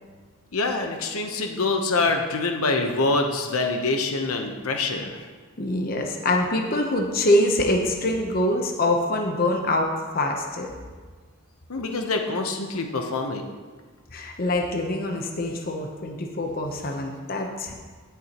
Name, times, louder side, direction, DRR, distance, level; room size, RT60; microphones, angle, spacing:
voice 1, 0.5-5.2 11.7-13.5, left 3 dB, 85° left, 4 dB, 0.9 m, -25 dB
voice 2, 5.6-10.7 14.1-17.7, left 1 dB, 40° left, 2 dB, 0.9 m, -24 dB
16.5 x 7.0 x 3.0 m, 1.4 s
head